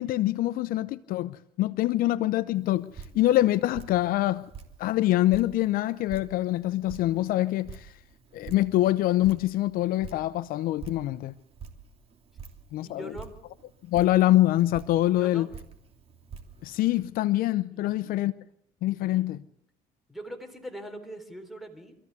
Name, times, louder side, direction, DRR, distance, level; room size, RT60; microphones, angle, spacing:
voice 1, 0.0-4.4 4.8-7.9 8.3-11.3 12.7-13.2 13.8-15.5 16.6-18.3 18.8-19.4, left 15 dB, 70° left, 0.8 m, -25 dB
Drip, 2.5-17.0, right 6 dB, 40° right, 3.0 m, -48 dB
voice 2, 12.8-13.3 15.2-15.5 17.7-18.2 19.0-19.4 20.1-21.9, right 1 dB, ahead, 3.9 m, -42 dB
25.0 x 15.0 x 8.3 m
cardioid pair, 115°, 16 cm